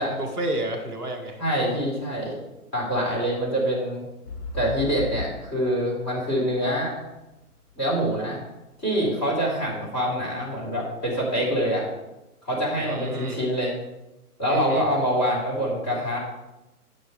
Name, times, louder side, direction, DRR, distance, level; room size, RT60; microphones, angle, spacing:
voice 1, 0.1-1.4 12.8-13.4 14.5-14.9, right 1 dB, 5° left, -7 dB, 0.7 m, -31 dB
voice 2, 1.4-2.4 2.7-4.0 4.5-7.0 7.8-8.4 8.8-11.8 12.4-13.7 14.4-16.2, equal, 20° left, -6 dB, 4.5 m, -25 dB
sound 1, 4.3-8.1 8.7-8.8, left 3 dB, 85° left, 2.9 m, -36 dB
18.5 x 6.4 x 3.3 m, 0.98 s
hypercardioid pair, 160°, 46 cm